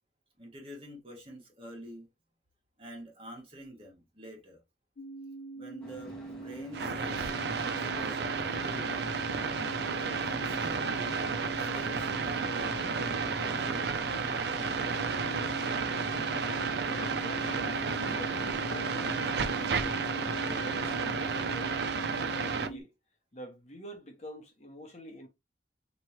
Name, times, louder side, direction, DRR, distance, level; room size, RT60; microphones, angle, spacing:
voice 1, 0.4-2.1 2.8-4.6 5.5-8.2 8.5-8.9 10.0-11.2 11.5-14.0, equal, 30° right, 1.7 m, -47 dB
sound 1, 5.0-22.8, right 3 dB, 70° left, 0.7 m, -42 dB
sound 2, 5.8-21.7, right 1 dB, 5° left, 1.9 m, -48 dB
sound 3, 6.7-22.7, right 5 dB, 60° right, 0.5 m, -32 dB
voice 2, 16.9-17.7 18.0-19.8 20.1-22.9 23.3-25.3, left 1 dB, 35° left, 1.1 m, -47 dB
4.4 x 3.1 x 3.0 m
head